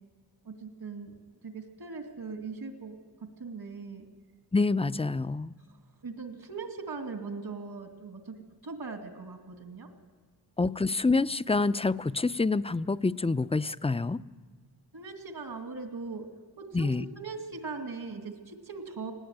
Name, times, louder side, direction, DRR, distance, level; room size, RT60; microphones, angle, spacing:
voice 1, 0.4-4.1 6.0-8.4 8.6-9.9 14.9-16.3 16.6-19.1, right 4 dB, 70° right, 5 dB, 2.6 m, -40 dB
voice 2, 4.5-5.5 10.6-14.2 16.7-17.0, left 3 dB, 15° left, 15 dB, 0.6 m, -27 dB
19.5 x 17.0 x 9.4 m, 1.5 s
cardioid pair, 50°, 39 cm